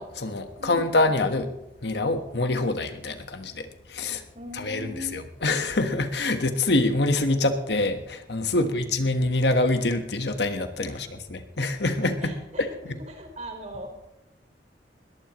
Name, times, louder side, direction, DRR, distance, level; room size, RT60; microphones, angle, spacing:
voice 1, 0.0-1.5 1.8-4.2 4.5-13.0, left 2 dB, 70° left, 7 dB, 1.4 m, -25 dB
voice 2, 0.6-0.9 4.3-5.2 8.5-8.9 10.9-11.1 12.2-12.8 13.1-13.9, equal, 40° right, 3 dB, 4.0 m, -40 dB
21.5 x 18.0 x 3.1 m, 0.89 s
head